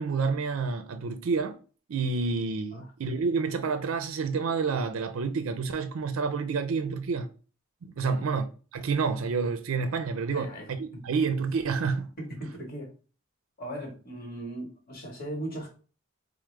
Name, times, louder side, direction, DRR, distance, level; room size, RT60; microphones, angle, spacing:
voice 1, 0.0-1.6 1.9-7.3 7.8-8.4 8.7-12.1, right 4 dB, 75° right, 0.4 m, -29 dB
voice 2, 8.0-8.4 10.3-11.0 12.2-12.9 13.6-15.7, right 1 dB, 45° left, 1.2 m, -38 dB
4.6 x 2.0 x 3.1 m
head